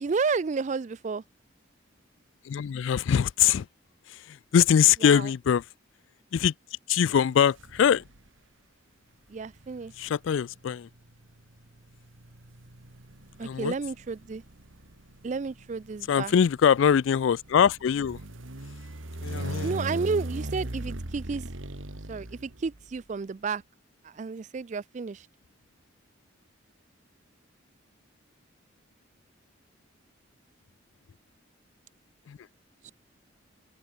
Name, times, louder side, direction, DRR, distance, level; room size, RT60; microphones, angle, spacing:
voice 1, 0.0-1.2 5.0-5.3 9.3-9.9 13.4-14.4 15.2-16.3 19.6-21.5 22.1-23.6 24.0-25.3 32.8-32.9, right 4 dB, 35° right, 0.4 m, -31 dB
voice 2, 2.5-3.7 4.1-5.6 6.3-6.5 6.9-8.0 10.0-10.9 13.4-13.7 16.1-18.2 19.2-19.7 32.3-32.4, left 8 dB, 75° left, 0.3 m, -23 dB
sound 1, 7.6-8.3 9.3-23.0, right 1 dB, 80° right, 2.1 m, -39 dB
open air
head